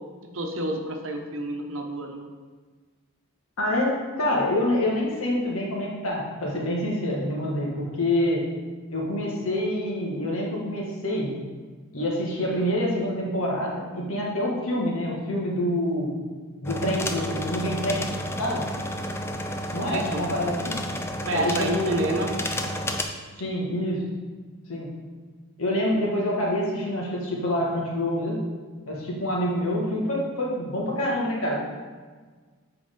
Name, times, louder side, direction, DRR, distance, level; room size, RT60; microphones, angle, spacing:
voice 1, 0.3-2.2 19.9-20.2 21.3-22.3, right 1 dB, 65° right, 3 dB, 0.9 m, -29 dB
voice 2, 3.6-8.4 8.9-11.4 11.9-16.1 16.6-18.1 18.4-18.6 19.7-20.8 21.3-22.2 23.4-24.0 24.7-24.9 25.6-28.4 28.9-31.6, left 1 dB, 75° left, -3 dB, 1.6 m, -26 dB
sound 1, 16.7-23.0, left 1 dB, 10° left, 0.3 m, -31 dB
7.7 x 4.8 x 3.7 m, 1.5 s
head